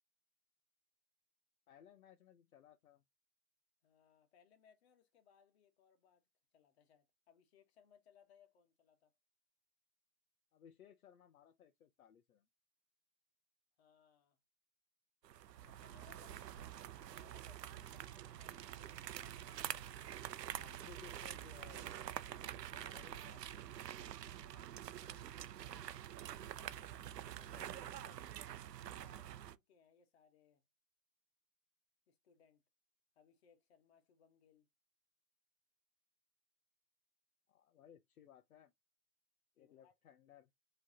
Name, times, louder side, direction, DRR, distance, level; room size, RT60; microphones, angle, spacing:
voice 1, 1.7-3.0 10.5-12.5 20.5-21.9 22.4-23.6 24.5-25.9 27.3-28.2 37.5-38.7 39.6-40.5, left 9 dB, 60° left, 0.8 m, -62 dB
voice 2, 3.8-6.2 6.5-9.1 13.8-14.4 15.6-20.5 22.3-22.6 23.9-24.6 26.6-28.2 28.8-30.6 32.1-32.6 33.1-34.7 39.6-39.9, left 7 dB, 40° left, 1.3 m, -70 dB
sound 1, 15.2-29.6, right 11 dB, 75° right, 0.6 m, -47 dB
4.8 x 3.2 x 2.8 m
hypercardioid pair, 145°, 49 cm